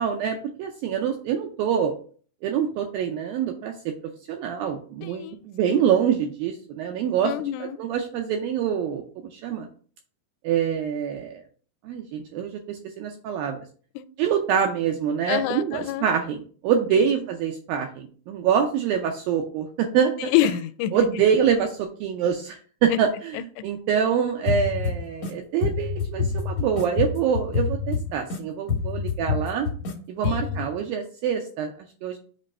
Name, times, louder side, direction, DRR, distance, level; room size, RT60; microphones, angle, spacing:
voice 1, 0.0-1.9 2.4-4.0 4.3-7.3 7.8-9.0 9.3-9.7 10.4-11.3 11.8-13.6 14.2-20.3 20.9-23.4 23.6-29.7 30.1-31.7 32.0-32.2, right 8 dB, 85° right, 4 dB, 2.0 m, -25 dB
voice 2, 5.0-5.4 5.7-5.9 7.2-7.8 14.0-14.1 15.3-16.1 16.9-17.2 20.2-21.2 22.9-23.0 23.3-23.7 30.2-30.7, left 13 dB, 85° left, 13 dB, 2.7 m, -27 dB
sound 1, 24.5-25.3 25.6-28.4 28.7-29.9 30.2-30.6, left 5 dB, 60° left, 1.9 m, -27 dB
7.6 x 3.2 x 5.4 m, 0.43 s
omnidirectional pair, 4.9 m